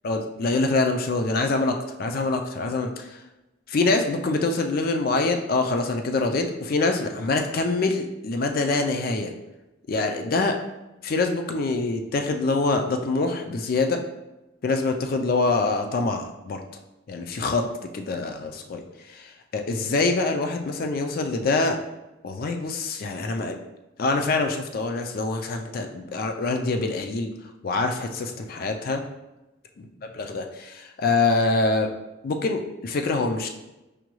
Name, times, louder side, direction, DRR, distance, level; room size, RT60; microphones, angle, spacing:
voice 1, 0.0-3.2 3.7-9.3 9.9-10.6 11.0-14.0 14.6-16.6 17.1-17.6 17.9-21.8 22.2-23.6 24.0-27.3 27.6-29.0 29.8-29.9 30.1-31.9 32.2-33.5, left 3 dB, 45° left, 5 dB, 0.4 m, -25 dB
4.9 x 2.2 x 3.0 m, 1.0 s
head